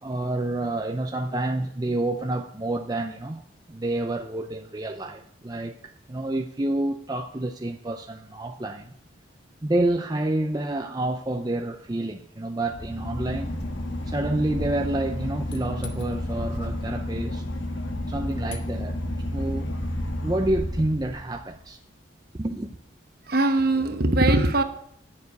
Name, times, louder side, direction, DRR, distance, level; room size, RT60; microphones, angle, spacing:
voice 1, 0.0-3.4 3.7-8.9 9.6-13.6 14.1-17.4 18.0-19.0 19.3-19.9 20.2-21.8 22.4-22.8, right 1 dB, 20° right, 0.5 m, -28 dB
Boat Water vehicle / Engine, 12.7-21.6, left 1 dB, 75° left, 1.3 m, -31 dB
voice 2, 23.3-24.6, right 2 dB, 50° right, 1.0 m, -21 dB
9.6 x 6.7 x 8.0 m
head